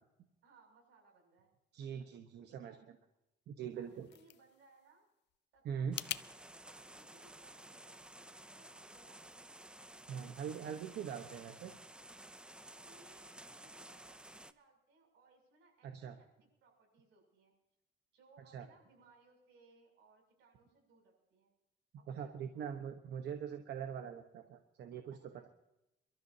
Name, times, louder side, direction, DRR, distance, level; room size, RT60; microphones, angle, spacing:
voice 1, 0.4-1.5 2.4-2.8 3.8-5.0 5.5-5.9 6.7-9.4 12.6-16.3 16.6-17.5 18.1-21.5 22.0-22.7 25.1-25.5, right 3 dB, 85° right, 1 dB, 7.1 m, -66 dB
voice 2, 1.7-2.7 3.5-4.1 5.6-6.0 10.1-11.7 15.8-16.2 18.5-18.7 22.1-25.2, right 7 dB, 65° right, 6 dB, 1.2 m, -42 dB
sound 1, 3.6-6.3, left 14 dB, 70° left, 0.5 m, -46 dB
sound 2, 5.9-14.5, right 1 dB, 5° right, 0.5 m, -54 dB
28.5 x 13.0 x 2.8 m, 0.90 s
cardioid pair, 140°, 19 cm